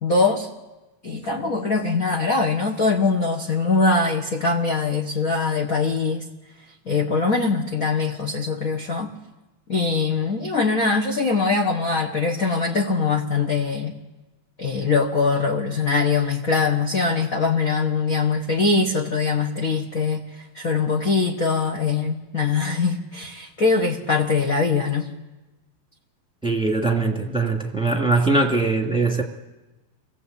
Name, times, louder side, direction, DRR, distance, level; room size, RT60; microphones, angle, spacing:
voice 1, 0.0-0.5 1.0-6.2 6.8-9.1 9.7-13.9 14.6-25.1, left 4 dB, 35° left, 1 dB, 1.5 m, -22 dB
voice 2, 26.4-29.2, right 3 dB, ahead, 1 dB, 2.2 m, -21 dB
29.0 x 20.0 x 8.4 m, 1.1 s
omnidirectional pair, 3.4 m